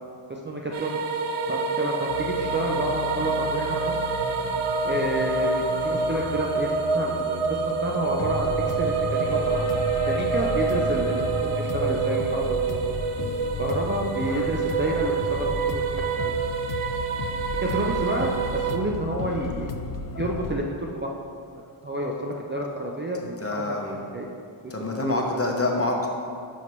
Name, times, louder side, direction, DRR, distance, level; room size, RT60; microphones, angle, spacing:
voice 1, 0.3-1.0 1.5-4.0 4.8-9.7 10.1-12.8 13.6-16.0 17.6-19.7 20.0-21.1 21.8-23.4 23.7-23.8 24.1-24.3 24.6-24.7 25.0-25.2, right 1 dB, 25° right, -1 dB, 0.4 m, -29 dB
sound 1, 0.7-18.8, right 5 dB, 85° right, 0.7 m, -27 dB
sound 2, 2.1-20.6, left 5 dB, 45° left, 0.5 m, -34 dB
sound 3, 8.0-14.0, left 3 dB, 70° left, 1.1 m, -42 dB
voice 2, 23.4-24.0 24.7-26.1, left 2 dB, 30° left, 0 dB, 0.9 m, -26 dB
11.0 x 5.9 x 3.1 m, 2.4 s
wide cardioid pair, 165°, 50 cm